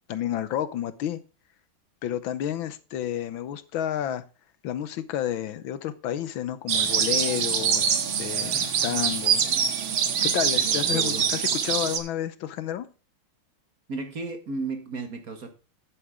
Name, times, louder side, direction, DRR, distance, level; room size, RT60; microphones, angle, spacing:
voice 1, 0.1-1.2 2.0-4.2 4.6-9.4 10.2-12.9, left 11 dB, 85° left, 1.6 m, -30 dB
sound 1, 6.7-12.0, right 7 dB, 85° right, 2.1 m, -24 dB
voice 2, 10.5-11.3 13.9-15.5, right 3 dB, 50° right, 1.9 m, -34 dB
11.0 x 9.2 x 3.6 m
omnidirectional pair, 2.2 m